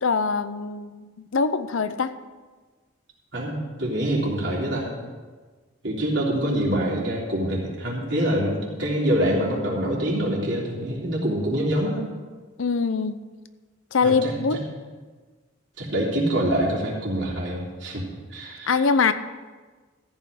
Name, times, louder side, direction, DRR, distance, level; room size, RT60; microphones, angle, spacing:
voice 1, 0.0-2.1 12.6-13.2 13.9-14.7 18.7-19.1, left 5 dB, 80° left, 12 dB, 0.6 m, -23 dB
voice 2, 3.3-4.9 5.8-12.0 14.0-14.6 15.8-18.0 18.3-18.8, right 1 dB, 60° right, -4 dB, 3.3 m, -25 dB
14.0 x 5.6 x 7.9 m, 1.4 s
head